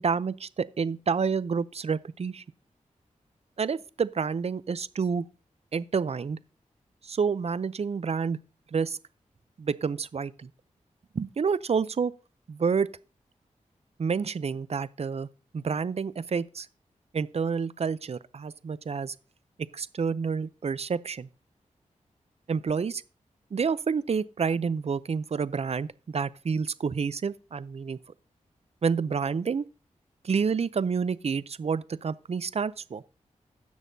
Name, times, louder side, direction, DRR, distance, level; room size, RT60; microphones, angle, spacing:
voice 1, 0.0-2.4 3.6-5.3 5.7-6.4 7.0-8.4 8.7-9.0 9.6-10.5 11.1-12.1 12.5-12.9 14.0-15.3 15.5-16.7 17.1-19.1 19.7-21.3 22.5-23.0 23.5-28.0 28.8-29.6 30.2-33.0, right 5 dB, 50° right, 0.5 m, -29 dB
16.5 x 6.4 x 2.7 m
cardioid pair, 50°, 14 cm